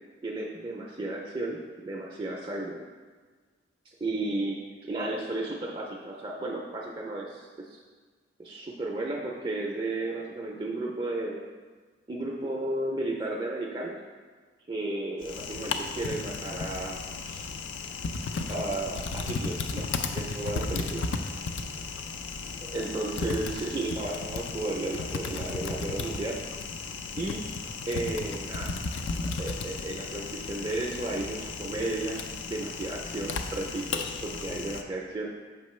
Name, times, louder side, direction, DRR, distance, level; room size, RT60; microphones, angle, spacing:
voice 1, 0.2-1.6 1.8-2.8 4.0-7.8 8.4-11.4 12.1-14.0 14.7-17.4 18.3-21.0 22.6-26.4 27.1-27.4 27.9-28.8 29.4-35.3, right 2 dB, 25° right, -2 dB, 0.4 m, -33 dB
Typing, 15.2-34.8, left 4 dB, 70° left, 0.4 m, -35 dB
6.6 x 5.1 x 3.1 m, 1.5 s
head